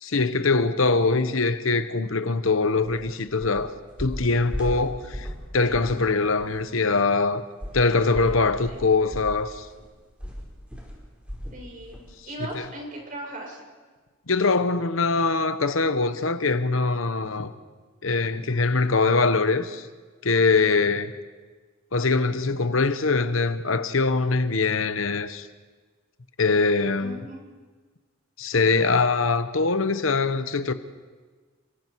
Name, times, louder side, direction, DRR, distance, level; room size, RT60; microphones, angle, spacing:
voice 1, 0.0-3.7 4.0-5.3 5.5-7.4 7.7-9.7 12.5-12.7 14.3-17.5 18.0-19.9 20.2-21.1 21.9-25.5 26.4-27.2 28.4-30.7, left 3 dB, 70° left, 1.1 m, -23 dB
sound 1, 2.8-3.0 3.4-3.6 4.0-5.4 5.7-6.0 6.4-6.5 7.6-11.6 11.9-12.1 12.5-12.6, equal, 5° right, 5.0 m, -36 dB
voice 2, 11.5-12.0 12.2-13.6 27.0-27.4, right 1 dB, 40° right, 7.2 m, -37 dB
30.0 x 23.5 x 4.7 m
head